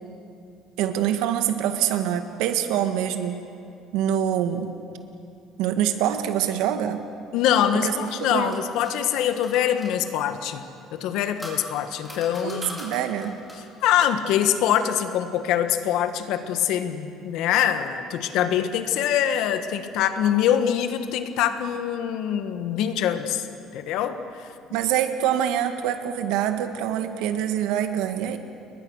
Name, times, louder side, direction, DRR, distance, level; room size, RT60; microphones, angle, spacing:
voice 1, 0.8-3.4 3.9-4.7 5.6-7.0 7.8-8.5 12.4-13.4 24.7-28.4, right 10 dB, 90° right, 7 dB, 1.8 m, -25 dB
voice 2, 7.3-12.8 13.8-23.5 23.7-24.5, left 10 dB, 70° left, 9 dB, 1.6 m, -24 dB
sound 1, 7.9-9.9 10.9-13.7, equal, 5° left, 5.0 m, -42 dB
29.5 x 22.0 x 6.5 m, 2.6 s
cardioid pair, 150°, 0 cm